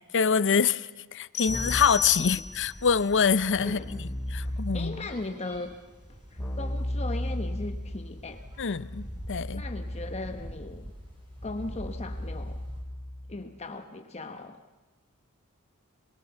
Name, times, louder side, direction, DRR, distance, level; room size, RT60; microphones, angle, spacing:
voice 1, 0.1-5.1 8.6-9.6, left 6 dB, 55° left, 16 dB, 0.7 m, -26 dB
sound 1, 1.3-2.9, left 4 dB, 70° left, 1.1 m, -34 dB
sound 2, 1.4-12.8, equal, 25° right, 5.6 m, -46 dB
Keyboard (musical), 1.5-2.1 3.5-5.1 6.4-13.4, left 1 dB, 5° left, 4.4 m, -36 dB
voice 2, 3.6-4.0 4.4-5.8 6.3-8.5 9.5-10.9 11.4-12.6 13.3-14.8, left 2 dB, 30° left, 6 dB, 1.0 m, -38 dB
27.5 x 21.5 x 6.9 m, 1.2 s
head